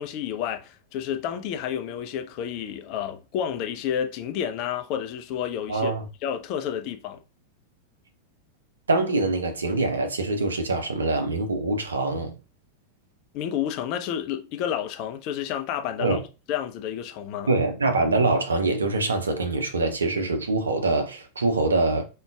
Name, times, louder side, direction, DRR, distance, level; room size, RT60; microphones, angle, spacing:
voice 1, 0.0-5.9 6.2-7.2 13.3-16.2 16.5-17.5, left 9 dB, 40° left, 0.4 m, -30 dB
voice 2, 5.7-6.1 8.9-12.3 16.0-16.2 17.5-22.0, right 2 dB, 75° right, 0.5 m, -24 dB
3.6 x 2.2 x 2.3 m
figure-of-eight pair, 90°, 0 cm